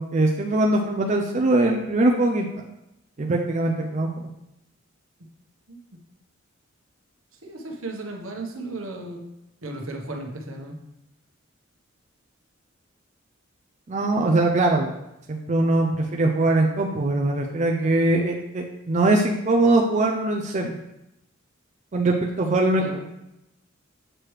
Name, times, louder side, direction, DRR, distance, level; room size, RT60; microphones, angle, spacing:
voice 1, 0.0-2.5 3.2-4.1 13.9-14.9 15.3-20.7 21.9-23.0, right 2 dB, 35° right, 1 dB, 0.5 m, -22 dB
voice 2, 7.4-9.3 9.6-10.8 22.8-23.0, right 2 dB, 80° right, 1 dB, 1.0 m, -35 dB
7.5 x 4.7 x 3.2 m, 0.88 s
head